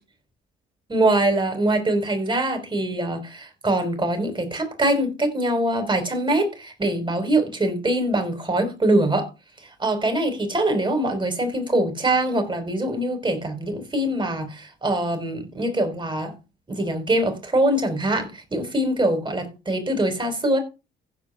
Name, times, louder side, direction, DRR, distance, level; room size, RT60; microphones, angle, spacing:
voice 1, 0.9-9.3 9.6-16.3 16.7-20.6, right 1 dB, 25° right, 5.2 m, -23 dB
15.5 x 5.2 x 5.9 m
cardioid pair, 90°, 20 cm